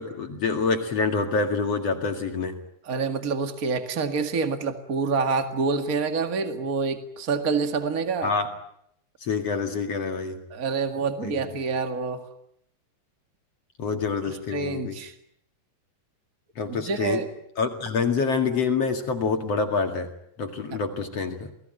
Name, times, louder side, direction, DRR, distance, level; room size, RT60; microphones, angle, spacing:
voice 1, 0.0-2.5 8.2-8.5 9.2-10.4 11.2-11.5 13.8-15.0 16.6-17.2 17.6-20.1 20.4-21.5, left 4 dB, 45° left, 5 dB, 2.4 m, -26 dB
voice 2, 2.8-8.3 10.5-12.2 14.5-15.1 16.7-17.2 20.7-20.8, right 4 dB, 60° right, 7 dB, 0.9 m, -27 dB
29.0 x 20.0 x 9.1 m, 0.73 s
omnidirectional pair, 5.1 m